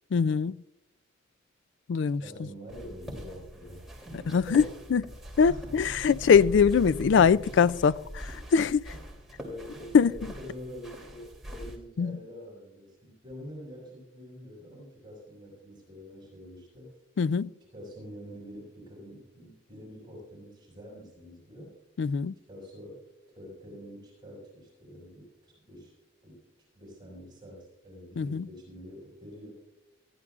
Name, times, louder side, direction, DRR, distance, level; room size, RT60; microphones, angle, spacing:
voice 1, 0.1-0.6 1.9-2.5 4.3-4.6 4.9-8.9 9.9-10.1 12.0-12.2 17.2-17.5 22.0-22.3 28.2-28.5, left 6 dB, 65° left, 0.3 m, -23 dB
voice 2, 2.2-4.6 5.4-6.3 8.9-9.0 9.4-16.9 17.7-21.8 22.5-23.0 23.3-25.9 26.2-26.4 26.7-29.5, equal, 25° right, 5.7 m, -46 dB
sound 1, 2.7-11.8, equal, ahead, 2.9 m, -42 dB
20.5 x 14.5 x 2.4 m
head